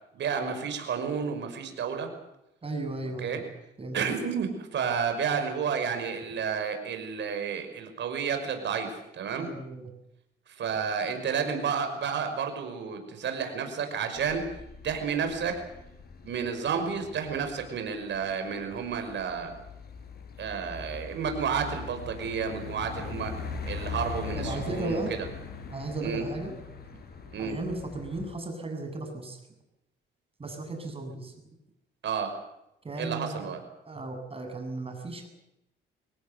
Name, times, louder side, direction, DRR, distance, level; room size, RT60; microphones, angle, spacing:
voice 1, 0.1-2.1 3.2-3.4 3.9-9.5 10.6-14.4 14.8-15.6 16.2-19.5 20.4-23.3 23.6-25.0 26.0-26.2 27.3-27.5 32.0-32.3 33.0-33.6, right 6 dB, 65° right, 6 dB, 5.7 m, -31 dB
voice 2, 2.6-3.4 3.8-4.0 9.4-9.9 24.3-25.1 25.7-26.5 27.4-29.4 30.4-31.3 32.8-33.5 33.9-35.3, right 2 dB, 30° right, 5 dB, 7.3 m, -35 dB
sound 1, 14.2-28.3, left 5 dB, 50° left, 4.7 m, -41 dB
24.5 x 18.5 x 8.2 m, 0.85 s
cardioid pair, 90°, 20 cm